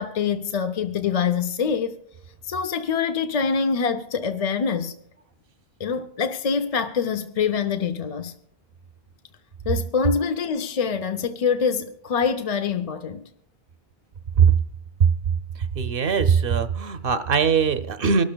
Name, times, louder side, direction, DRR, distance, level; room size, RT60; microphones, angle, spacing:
voice 1, 0.0-2.0 2.4-4.9 5.8-8.3 9.7-13.2, left 6 dB, 45° left, 0.5 m, -25 dB
voice 2, 15.8-18.2, right 6 dB, 65° right, 0.8 m, -20 dB
24.5 x 12.5 x 2.2 m
omnidirectional pair, 1.0 m